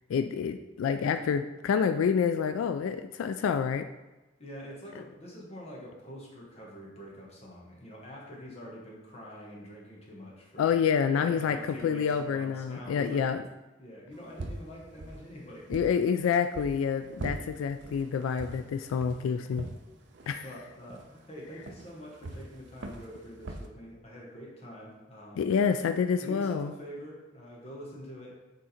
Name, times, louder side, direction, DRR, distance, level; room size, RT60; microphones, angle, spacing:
voice 1, 0.1-3.9 10.6-13.4 15.7-19.7 20.3-20.5 25.4-26.7, left 6 dB, 85° left, 9 dB, 0.3 m, -28 dB
voice 2, 4.4-10.7 11.2-13.2 13.8-15.6 20.4-25.5 26.2-28.4, equal, 30° left, -3 dB, 1.4 m, -45 dB
sound 1, 14.1-23.7, right 2 dB, 60° right, 0.6 m, -44 dB
6.7 x 3.7 x 4.3 m, 1.1 s
head